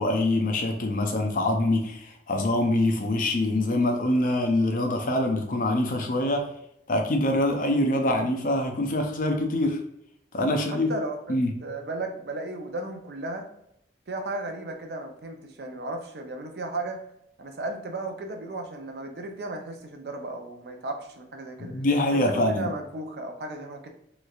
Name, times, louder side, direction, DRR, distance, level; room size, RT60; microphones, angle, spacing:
voice 1, 0.0-6.4 6.9-9.8 10.3-10.9 11.3-11.5 21.6-22.7, left 1 dB, 50° left, 3 dB, 0.5 m, -24 dB
voice 2, 10.5-13.5 14.1-17.0 17.4-21.8 22.1-23.9, right 2 dB, 65° right, 4 dB, 0.5 m, -35 dB
3.1 x 3.1 x 2.4 m, 0.75 s
head